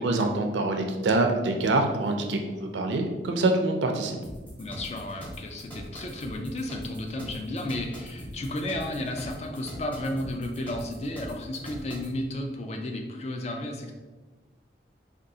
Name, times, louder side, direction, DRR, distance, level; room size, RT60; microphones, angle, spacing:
voice 1, 0.0-4.2, right 2 dB, 85° right, 4 dB, 0.4 m, -25 dB
sound 1, 4.2-12.1, equal, 10° left, 0.7 m, -42 dB
voice 2, 4.6-13.9, left 1 dB, 35° left, 3 dB, 0.3 m, -33 dB
3.6 x 2.3 x 2.7 m, 1.2 s
head